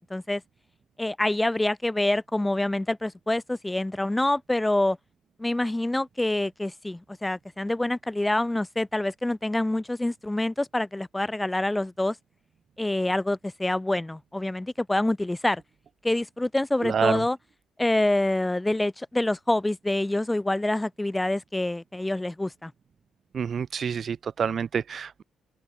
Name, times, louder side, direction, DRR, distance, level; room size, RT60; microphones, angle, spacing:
voice 1, 0.1-0.4 1.0-5.0 5.4-12.2 12.8-15.6 16.0-17.4 17.8-22.7, left 1 dB, 15° left, 1.2 m, -26 dB
voice 2, 16.8-17.2 23.3-25.2, right 7 dB, 50° right, 0.3 m, -28 dB
open air
hypercardioid pair, 45°, 0 cm